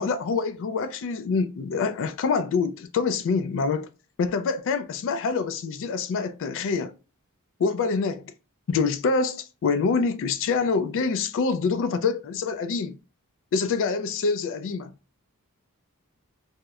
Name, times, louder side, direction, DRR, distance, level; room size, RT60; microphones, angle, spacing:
voice 1, 0.0-3.9 4.2-6.9 7.6-8.3 8.7-13.0 13.5-14.9, left 4 dB, 60° left, 0.3 m, -26 dB
2.9 x 2.0 x 2.3 m
head